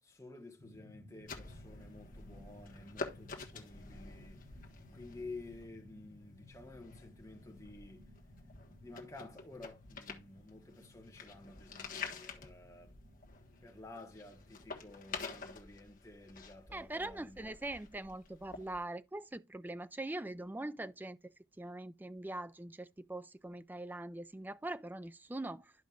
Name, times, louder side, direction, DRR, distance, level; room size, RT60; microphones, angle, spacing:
voice 1, 0.0-4.4 4.9-8.0 8.8-13.0 13.6-17.5, left 2 dB, 15° left, 1.5 m, -52 dB
sound 1, 0.6-15.5, left 1 dB, 70° right, 3.8 m, -59 dB
sound 2, 1.3-18.8, left 4 dB, 45° left, 1.3 m, -49 dB
voice 2, 16.7-25.7, right 2 dB, 10° right, 0.3 m, -42 dB
12.5 x 5.1 x 2.5 m
head